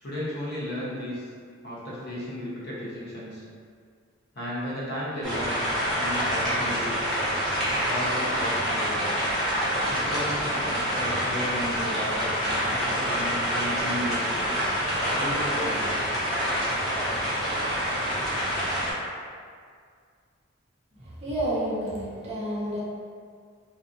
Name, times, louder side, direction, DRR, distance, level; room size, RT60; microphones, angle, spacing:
voice 1, 0.0-1.3 1.6-3.4 4.3-5.6 6.0-7.1 7.7-9.0 9.9-14.4 15.1-16.0, equal, 55° left, -8 dB, 0.7 m, -34 dB
sound 1, 5.2-18.9, equal, ahead, 0.7 m, -27 dB
voice 2, 21.0-22.8, right 1 dB, 30° right, -8 dB, 0.6 m, -30 dB
2.7 x 2.4 x 2.4 m, 2.1 s
head